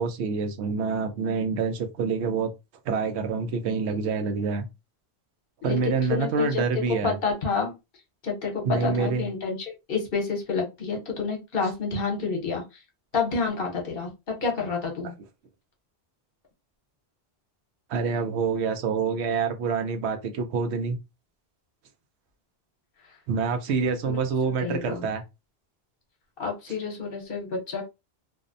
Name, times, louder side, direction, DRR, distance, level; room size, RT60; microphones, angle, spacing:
voice 1, 0.0-2.5 2.9-4.7 5.6-7.1 8.6-9.3 17.9-21.0 23.3-25.2, right 5 dB, 85° right, 0.8 m, -26 dB
voice 2, 5.6-6.6 7.0-7.7 8.2-12.8 13.1-14.1 14.4-15.2 24.0-24.2 24.6-25.1 26.4-27.8, left 5 dB, 60° left, 1.0 m, -29 dB
2.6 x 2.0 x 2.5 m
omnidirectional pair, 1.1 m